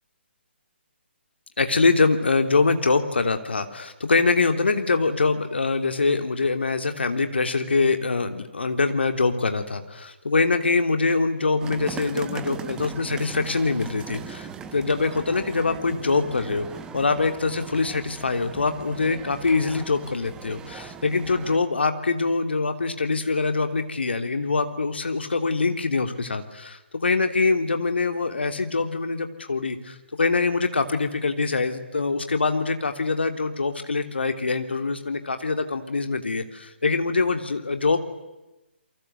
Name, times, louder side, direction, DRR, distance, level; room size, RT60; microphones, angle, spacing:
voice 1, 1.6-16.7 16.9-38.0, left 4 dB, 65° left, 8 dB, 3.1 m, -24 dB
sound 1, 11.6-21.6, right 7 dB, 10° right, 1.3 m, -39 dB
29.0 x 24.0 x 8.0 m, 1.0 s
figure-of-eight pair, 135°, 6 cm